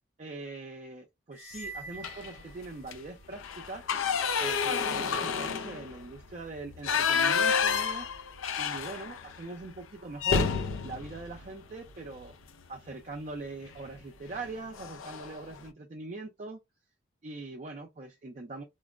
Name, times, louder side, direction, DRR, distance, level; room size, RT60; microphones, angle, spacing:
voice 1, 0.2-3.8 4.4-8.1 8.6-10.5 10.8-12.4 12.7-16.6 17.2-18.6, right 3 dB, 35° right, 0.4 m, -42 dB
sound 1, 1.3-3.2, right 3 dB, 50° left, 0.8 m, -46 dB
sound 2, 2.0-2.4 2.8-3.0 3.3-9.4 9.7-9.8 10.2-12.3 13.7-13.9 14.3-14.5 14.8-15.4, left 6 dB, 85° left, 0.4 m, -30 dB
4.3 x 2.0 x 2.4 m
head